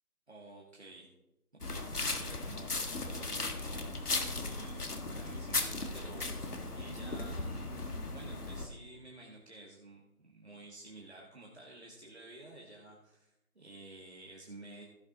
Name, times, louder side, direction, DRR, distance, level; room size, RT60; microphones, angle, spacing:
voice 1, 0.3-1.1 1.7-2.7 3.0-4.0 4.3-13.3 13.6-14.8, right 2 dB, 45° right, -3 dB, 1.8 m, -52 dB
sound 1, 1.6-8.7, left 3 dB, 85° left, 1.6 m, -37 dB
16.0 x 5.8 x 3.9 m, 0.92 s
figure-of-eight pair, 175°, 45 cm